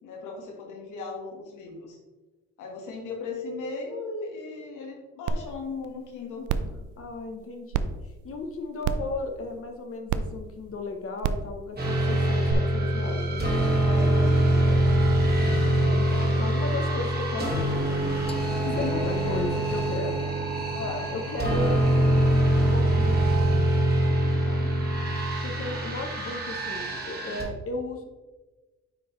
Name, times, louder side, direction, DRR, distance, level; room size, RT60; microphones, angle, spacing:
voice 1, 0.0-2.0 2.6-6.5 13.8-14.9 15.2-15.4 18.4-19.0 20.7-21.1 24.4-24.7, left 4 dB, 85° left, 0 dB, 1.6 m, -37 dB
sound 1, 5.3-5.4 5.8-5.9 6.5-6.7 7.7-7.8 8.8-9.1 10.1-10.2 11.2-11.4 12.5-12.6, right 8 dB, 90° right, 0.5 m, -26 dB
voice 2, 6.6-7.9 8.2-13.4 15.4-18.0 18.7-20.2 21.1-23.4 25.4-28.0, left 2 dB, 50° left, 4 dB, 0.9 m, -35 dB
sound 2, 11.8-27.4, right 1 dB, 30° right, 1.9 m, -24 dB
Singing, 17.3-22.3, left 4 dB, 20° left, 0.5 m, -42 dB
9.2 x 3.8 x 3.1 m, 1.2 s
cardioid pair, 90°, 30 cm